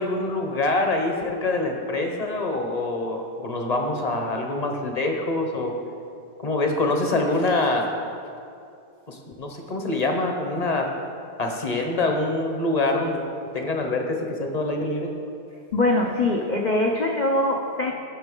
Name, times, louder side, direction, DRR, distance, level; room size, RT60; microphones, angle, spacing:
voice 1, 0.0-5.7 6.4-7.9 9.1-10.9 11.4-13.2 13.5-15.1, left 2 dB, 35° left, 2 dB, 0.7 m, -25 dB
voice 2, 15.7-17.9, left 2 dB, 85° left, 0 dB, 0.4 m, -22 dB
15.5 x 6.3 x 3.8 m, 2.5 s
omnidirectional pair, 1.8 m